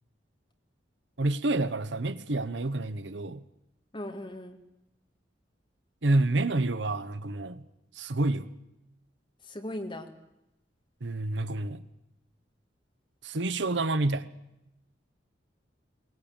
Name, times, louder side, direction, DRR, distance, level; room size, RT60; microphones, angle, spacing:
voice 1, 1.2-3.4 6.0-7.6 7.9-8.5 11.0-11.8 13.2-14.3, right 2 dB, 70° right, 13 dB, 1.0 m, -28 dB
voice 2, 3.9-4.6 9.4-10.1, left 1 dB, 25° left, 4 dB, 2.2 m, -38 dB
21.5 x 19.0 x 8.9 m, 0.88 s
head